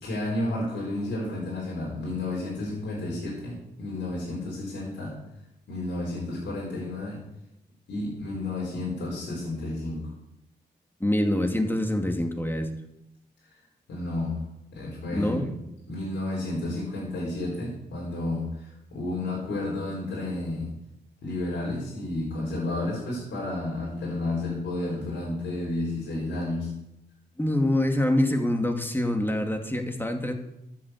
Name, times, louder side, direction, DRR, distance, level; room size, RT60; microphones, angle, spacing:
voice 1, 0.0-5.2 5.7-7.2 7.9-10.1 13.9-14.4 14.7-15.5 15.9-20.7 21.2-26.8, left 2 dB, 85° left, -5 dB, 4.5 m, -31 dB
voice 2, 11.0-12.7 15.1-15.5 27.4-30.3, left 1 dB, 10° left, 4 dB, 2.5 m, -25 dB
11.0 x 7.8 x 8.1 m, 0.84 s
supercardioid pair, 45°, 18 cm